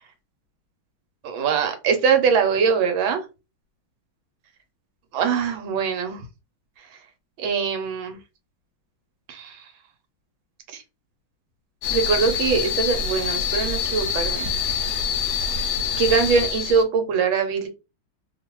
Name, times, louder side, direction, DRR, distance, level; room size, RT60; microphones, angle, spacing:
voice 1, 1.2-3.2 5.1-6.2 7.4-8.2 9.3-9.6 11.9-14.5 16.0-17.7, right 6 dB, 75° right, 6 dB, 1.5 m, -22 dB
sound 1, 11.8-16.8, left 6 dB, 75° left, 0.9 m, -25 dB
3.2 x 2.3 x 2.9 m, 0.28 s
omnidirectional pair, 2.2 m